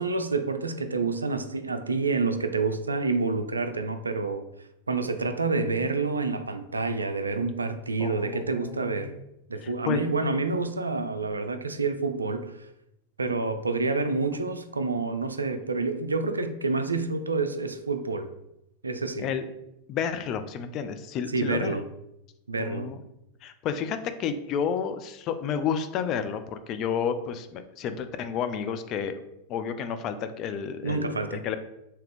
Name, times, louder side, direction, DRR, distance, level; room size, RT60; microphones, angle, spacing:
voice 1, 0.0-4.5 4.9-9.1 9.5-12.7 13.2-18.3 18.8-19.3 21.3-21.9 22.5-22.9 30.8-31.4, right 3 dB, 80° right, 9 dB, 0.3 m, -28 dB
voice 2, 8.0-9.2 9.6-10.0 19.2-19.4 19.9-21.8 22.6-23.0 23.4-29.2 29.5-31.6, left 7 dB, 35° left, 9 dB, 0.3 m, -31 dB
3.5 x 2.8 x 3.3 m, 0.85 s
figure-of-eight pair, 90°, 0 cm